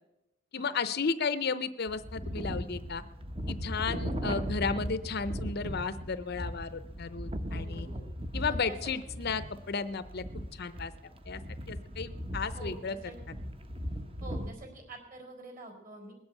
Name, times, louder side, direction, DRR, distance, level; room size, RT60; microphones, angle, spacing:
voice 1, 0.5-3.0 3.5-7.9 8.3-10.2 10.5-10.9 11.3-11.4 11.7-13.0, left 5 dB, 50° left, 13 dB, 0.6 m, -33 dB
sound 1, 1.9-14.5, equal, 25° right, 0.9 m, -38 dB
voice 2, 7.5-8.1 8.5-9.3 12.5-13.1 14.2-16.1, right 2 dB, 40° right, 3 dB, 4.4 m, -47 dB
20.0 x 8.0 x 8.3 m, 0.92 s
head